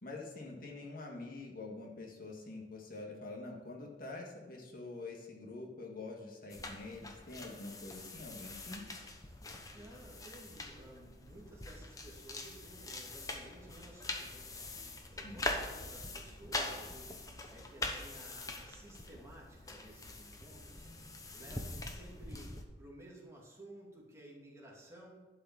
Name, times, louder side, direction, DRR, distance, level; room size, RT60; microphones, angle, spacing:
voice 1, 0.0-8.8 15.2-15.5, left 2 dB, 55° left, -1 dB, 1.8 m, -46 dB
sound 1, 6.5-22.6, left 2 dB, 20° left, 1.0 m, -43 dB
sound 2, 8.3-21.1, equal, 70° right, 2.4 m, -62 dB
voice 2, 9.7-14.6 15.1-25.2, right 1 dB, 15° right, -4 dB, 2.7 m, -55 dB
11.5 x 5.6 x 7.0 m, 1.2 s
head